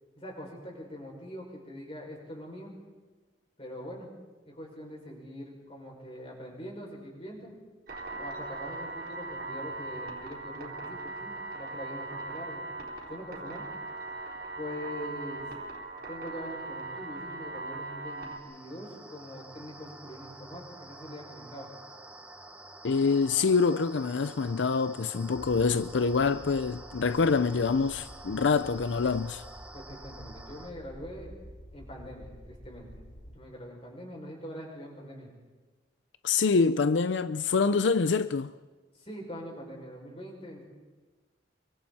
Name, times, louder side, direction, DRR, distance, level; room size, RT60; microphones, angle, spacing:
voice 1, 0.2-2.7 3.6-4.1 4.5-7.5 8.1-12.6 13.1-13.6 14.6-15.5 16.1-21.7 29.7-31.3 31.7-33.0 33.3-35.3 38.9-40.6, equal, 30° left, 6.3 m, -43 dB
sound 1, 7.9-18.4, right 2 dB, 55° right, 4.0 m, -39 dB
sound 2, 18.1-30.7, right 2 dB, 10° right, 1.4 m, -49 dB
voice 2, 22.8-29.4 36.2-38.5, left 4 dB, 85° left, 0.5 m, -26 dB
sound 3, 25.4-33.4, equal, 60° left, 2.9 m, -49 dB
27.5 x 24.0 x 4.3 m
head